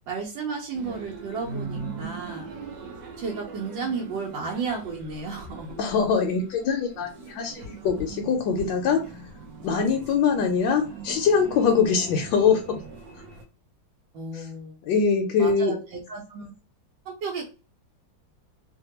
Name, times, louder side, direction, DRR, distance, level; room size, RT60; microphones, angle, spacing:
voice 1, 0.1-2.5 3.2-5.7 14.1-14.8 15.4-16.5 17.1-17.5, right 4 dB, 85° right, -2 dB, 1.4 m, -33 dB
sound 1, 0.7-13.4, right 4 dB, 60° right, 1.0 m, -40 dB
voice 2, 5.8-9.0 9.6-12.8 14.3-14.4 14.8-15.8, left 6 dB, 80° left, 2 dB, 1.2 m, -23 dB
3.3 x 2.1 x 2.8 m, 0.33 s
omnidirectional pair, 2.0 m